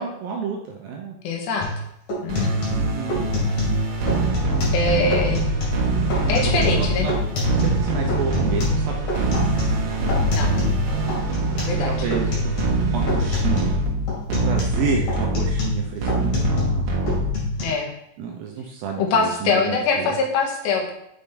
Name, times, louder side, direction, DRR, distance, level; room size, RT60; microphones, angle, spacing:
voice 1, 0.0-1.2 2.8-3.3 4.9-5.0 5.3-5.4 6.4-7.1 7.6-9.2 11.8-12.6 12.9-13.7 14.3-16.9 18.2-20.2, right 6 dB, 80° right, 1 dB, 2.2 m, -30 dB
voice 2, 1.2-1.7 2.2-2.6 4.7-5.5 6.3-7.1 10.3-10.6 11.6-11.9 17.6-17.9 19.0-20.9, left 4 dB, 85° left, 0 dB, 3.4 m, -23 dB
sound 1, 1.6-1.8 2.1-3.8 4.1-4.8 5.1-5.8 6.1-7.8 8.1-10.8 11.1-11.8 12.1-12.8 13.1-13.8 14.1-16.8 17.1-17.6, left 1 dB, 50° left, 3.3 m, -26 dB
sound 2, 2.3-17.7, right 1 dB, 60° right, 2.0 m, -24 dB
7.4 x 5.5 x 3.4 m, 0.76 s
omnidirectional pair, 4.9 m